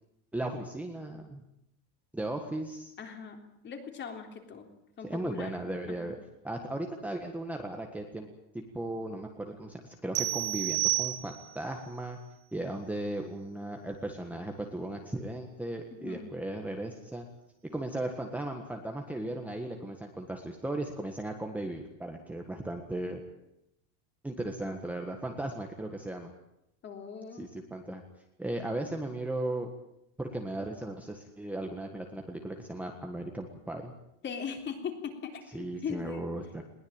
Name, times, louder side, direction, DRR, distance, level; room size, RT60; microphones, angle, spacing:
voice 1, 0.3-1.4 2.1-2.9 5.0-6.2 6.4-8.3 8.5-12.2 12.5-17.2 17.7-23.2 24.2-26.3 27.3-28.0 28.4-29.7 30.2-33.9 35.5-36.6, right 1 dB, 5° right, 3 dB, 1.6 m, -36 dB
voice 2, 3.0-4.7 5.0-5.6 5.9-6.1 15.9-16.3 26.8-27.6 34.2-36.3, left 6 dB, 25° left, 5 dB, 3.6 m, -40 dB
sound 1, 10.2-11.7, right 19 dB, 70° right, 2.2 m, -30 dB
21.5 x 20.0 x 8.9 m, 0.82 s
cardioid pair, 180°, 42 cm